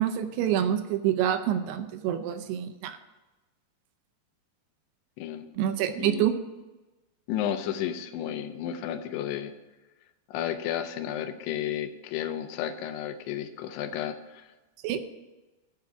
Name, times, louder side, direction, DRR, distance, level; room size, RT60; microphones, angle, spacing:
voice 1, 0.0-3.0 5.5-6.4 14.8-15.0, right 10 dB, 80° right, 8 dB, 2.7 m, -27 dB
voice 2, 5.2-5.5 6.0-6.3 7.3-9.5 10.3-14.5, left 10 dB, 85° left, 8 dB, 2.8 m, -32 dB
11.5 x 4.7 x 8.1 m, 1.1 s
omnidirectional pair, 4.8 m